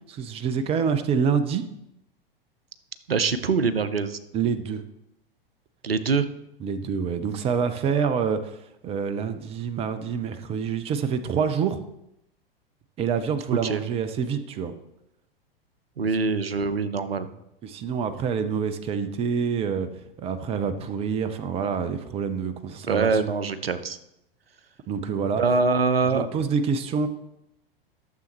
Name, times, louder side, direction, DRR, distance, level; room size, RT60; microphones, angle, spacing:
voice 1, 0.1-1.6 4.3-4.8 6.6-11.8 13.0-14.7 17.6-19.9 20.2-23.2 24.9-25.4 26.1-27.1, right 6 dB, 20° right, 11 dB, 0.6 m, -27 dB
voice 2, 3.1-4.2 5.8-6.3 13.6-13.8 16.0-17.3 22.9-24.0 25.4-26.3, right 4 dB, 80° right, 13 dB, 0.6 m, -24 dB
13.0 x 7.0 x 3.0 m, 0.83 s
figure-of-eight pair, 95°, 29 cm